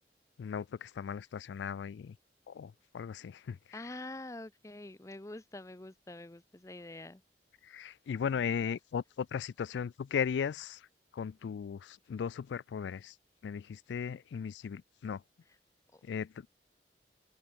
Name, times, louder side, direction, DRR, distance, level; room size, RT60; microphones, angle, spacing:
voice 1, 0.4-2.2 2.5-3.8 7.6-10.9 11.1-13.2 13.4-15.2 16.0-16.5, left 7 dB, 90° left, 0.3 m, -37 dB
voice 2, 3.7-7.2 15.9-16.0, left 2 dB, 15° left, 0.6 m, -46 dB
head